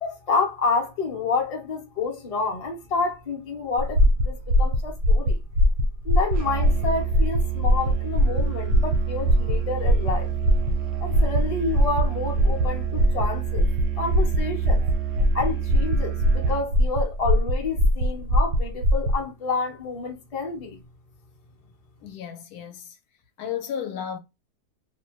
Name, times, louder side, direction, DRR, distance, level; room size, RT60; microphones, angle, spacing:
voice 1, 0.0-5.4 6.0-10.3 11.0-13.7 14.0-14.8 15.3-20.8, left 4 dB, 40° left, 0.5 m, -29 dB
sound 1, 3.8-19.2, equal, 85° right, 1.2 m, -21 dB
Musical instrument, 6.3-16.7, right 14 dB, 70° right, 0.8 m, -30 dB
voice 2, 22.0-23.0 23.4-24.2, left 8 dB, 75° left, 1.0 m, -33 dB
2.8 x 2.2 x 2.8 m
omnidirectional pair, 1.7 m